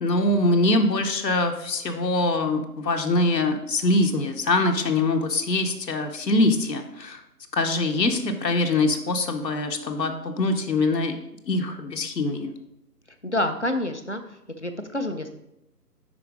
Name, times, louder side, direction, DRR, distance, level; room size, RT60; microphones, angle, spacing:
voice 1, 0.0-7.2 7.5-11.1 11.5-12.5, left 2 dB, 80° left, 5 dB, 0.9 m, -23 dB
voice 2, 13.2-14.2 14.6-15.3, left 1 dB, 50° left, 7 dB, 0.4 m, -27 dB
5.0 x 4.5 x 4.9 m, 0.83 s
figure-of-eight pair, 170°, 49 cm